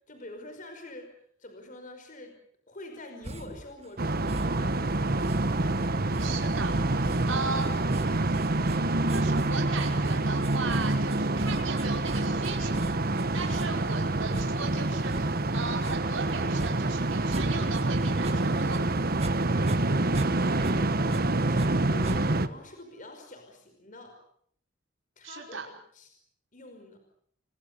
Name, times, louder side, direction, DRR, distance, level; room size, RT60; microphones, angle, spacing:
voice 1, 0.1-2.4 2.7-5.9 19.5-19.6 20.1-24.2 25.2-26.2 26.5-27.0, left 1 dB, 45° left, 5 dB, 5.3 m, -46 dB
sound 1, 3.2-3.7 4.3-4.7 5.2-17.8 18.1-19.4 19.6-21.7 22.0-22.5, right 1 dB, 35° right, 1.9 m, -39 dB
sound 2, 4.0-22.5, right 2 dB, 50° right, 1.3 m, -27 dB
voice 2, 6.2-6.8 7.2-8.5 9.1-18.8 25.2-25.7, right 4 dB, 80° right, 2 dB, 5.1 m, -37 dB
28.5 x 24.0 x 6.9 m, 0.63 s
head